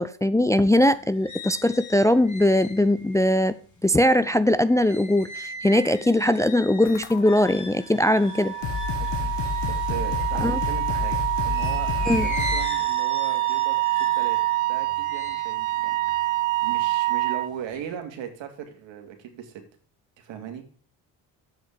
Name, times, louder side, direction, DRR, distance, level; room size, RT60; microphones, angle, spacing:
voice 1, 0.0-3.5 3.8-8.5 10.4-10.6 12.1-12.3, left 1 dB, 5° left, 0.5 m, -20 dB
sound 1, 0.8-10.9 11.5-17.0 17.4-18.0, left 2 dB, 40° left, 3.0 m, -40 dB
sound 2, 6.8-7.5 8.2-8.3 8.6-12.8, left 7 dB, 65° left, 1.9 m, -29 dB
Wind instrument woodwind instrument, 8.1-17.5, right 18 dB, 90° right, 1.0 m, -26 dB
voice 2, 9.0-9.3 9.6-14.4 14.7-19.6 20.2-20.6, right 9 dB, 75° right, 2.6 m, -38 dB
8.1 x 6.3 x 7.5 m
supercardioid pair, 70°, 46 cm